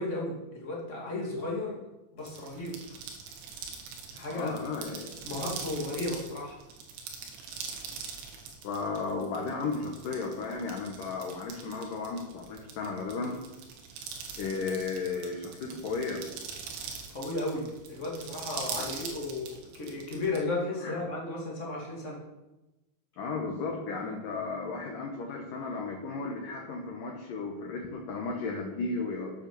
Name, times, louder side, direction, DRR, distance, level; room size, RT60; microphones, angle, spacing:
voice 1, 0.0-1.8 2.1-2.8 4.1-4.6 5.2-6.6 17.1-22.2, left 2 dB, 35° left, -3 dB, 1.1 m, -34 dB
sound 1, 2.2-20.4, right 6 dB, 75° right, 4.1 m, -42 dB
voice 2, 4.3-5.4 8.6-13.4 14.4-16.2 18.8-18.9 20.8-21.0 23.2-29.3, left 4 dB, 85° left, 1 dB, 1.9 m, -34 dB
9.8 x 7.6 x 6.9 m, 1.0 s
omnidirectional pair, 5.8 m